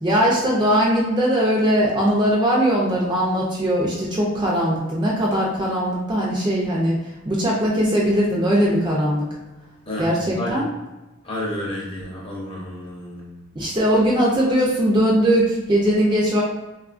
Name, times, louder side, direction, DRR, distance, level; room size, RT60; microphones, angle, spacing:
voice 1, 0.0-7.0 7.3-9.3 10.0-10.6 13.6-16.4, equal, 20° right, -4 dB, 0.4 m, -20 dB
voice 2, 11.2-13.4, left 1 dB, 25° left, -4 dB, 0.6 m, -30 dB
3.5 x 2.3 x 2.4 m, 1.1 s
head